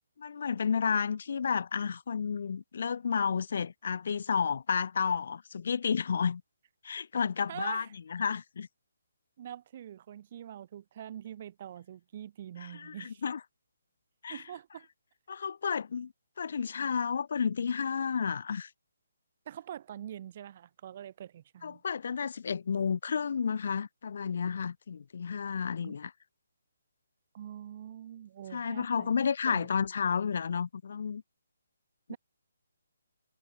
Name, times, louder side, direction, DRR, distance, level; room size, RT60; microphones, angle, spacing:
voice 1, 0.2-6.4 6.8-8.7 12.6-13.4 14.2-14.4 15.3-16.1 16.4-18.7 21.6-26.1 28.5-31.2 32.1-32.2, left 6 dB, 50° left, 3.2 m, -31 dB
voice 2, 7.5-7.9 9.4-13.2 14.3-14.9 19.5-21.8 25.8-26.0 27.3-29.1 29.5-29.7 32.1-32.2, right 10 dB, 30° right, 5.4 m, -44 dB
hypercardioid pair, 170°, 0 cm